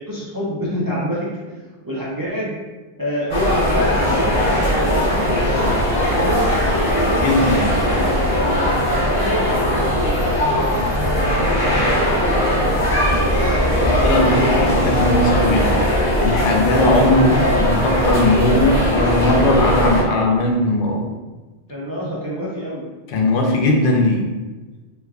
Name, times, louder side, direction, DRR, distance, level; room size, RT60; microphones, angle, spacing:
voice 1, 0.0-2.6 3.0-10.9 11.3-14.3 21.7-22.9, equal, 35° right, -6 dB, 0.3 m, -27 dB
sound 1, 3.3-20.0, equal, 30° left, 0.9 m, -19 dB
voice 2, 7.2-7.7 14.0-15.8 16.2-21.1 23.1-24.3, left 2 dB, 60° left, 0 dB, 0.7 m, -18 dB
3.1 x 2.2 x 3.4 m, 1.2 s
omnidirectional pair, 1.2 m